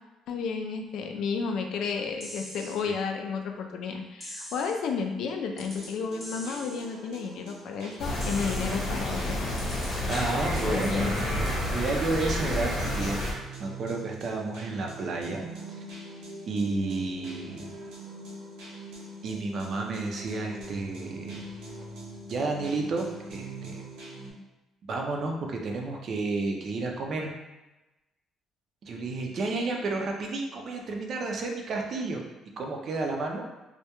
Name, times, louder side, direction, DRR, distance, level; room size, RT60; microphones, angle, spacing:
voice 1, 0.3-9.6 10.7-11.4, left 5 dB, 70° left, 3 dB, 0.3 m, -32 dB
sound 1, 2.2-2.8 4.2-4.8 5.6-5.9 6.2-6.8 8.2-8.8 9.6-9.9, equal, 5° left, 0.6 m, -42 dB
sound 2, 5.6-24.3, right 2 dB, 90° right, 0.7 m, -43 dB
sound 3, 8.0-13.3, left 1 dB, 55° left, 0.7 m, -30 dB
voice 2, 10.1-13.3 13.6-15.4 16.5-17.7 19.2-21.4 22.3-23.8 24.9-27.4 28.8-32.2 32.6-33.5, right 3 dB, 50° right, 1 dB, 0.4 m, -31 dB
2.2 x 2.1 x 2.8 m, 1.0 s
cardioid pair, 100°, 0 cm